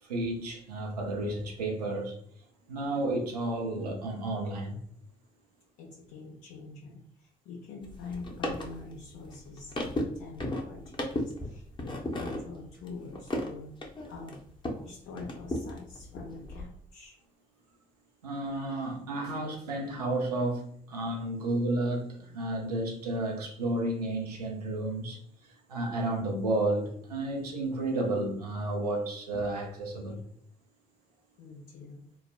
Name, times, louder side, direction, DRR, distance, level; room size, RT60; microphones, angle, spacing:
voice 1, 0.0-2.2 2.7-4.8 18.2-30.2, right 2 dB, 90° right, 0.5 m, -32 dB
voice 2, 5.8-10.9 11.2-13.7 14.1-14.4 14.8-17.2 31.4-32.0, left 3 dB, 70° left, 0.8 m, -45 dB
sound 1, 7.8-14.9 15.2-16.6, left 1 dB, 25° left, 0.8 m, -36 dB
3.3 x 2.1 x 2.4 m
hypercardioid pair, 45°, 20 cm